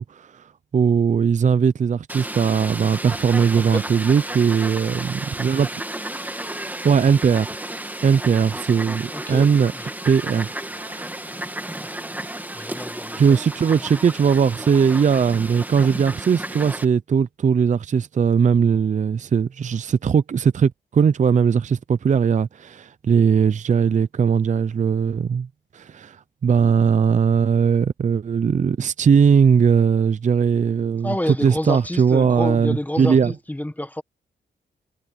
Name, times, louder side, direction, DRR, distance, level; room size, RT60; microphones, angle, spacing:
voice 1, 0.0-5.7 6.8-7.5 8.0-9.7 10.1-11.1 13.1-25.5 25.7-33.3, right 6 dB, 45° right, 0.5 m, -19 dB
Fowl, 2.1-16.9, right 1 dB, 10° right, 1.8 m, -33 dB
voice 2, 3.5-3.8 9.1-9.5 9.7-9.9 12.5-13.4 13.7-13.8 31.0-34.0, left 1 dB, 10° left, 1.6 m, -29 dB
cardioid pair, 95°, 18 cm